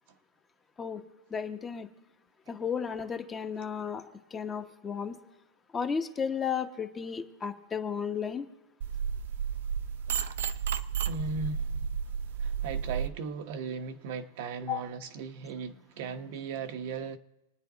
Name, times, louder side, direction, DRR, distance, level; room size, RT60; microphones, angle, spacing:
voice 1, 1.3-1.9 2.5-4.0 4.3-5.1 5.7-8.5 14.7-14.8, left 7 dB, 15° left, 0.9 m, -33 dB
sound 1, 8.8-13.1, right 7 dB, 75° right, 0.7 m, -32 dB
voice 2, 11.1-11.8 12.4-17.2, right 4 dB, 50° right, 0.9 m, -37 dB
27.5 x 9.7 x 3.9 m
supercardioid pair, 160°, 0 cm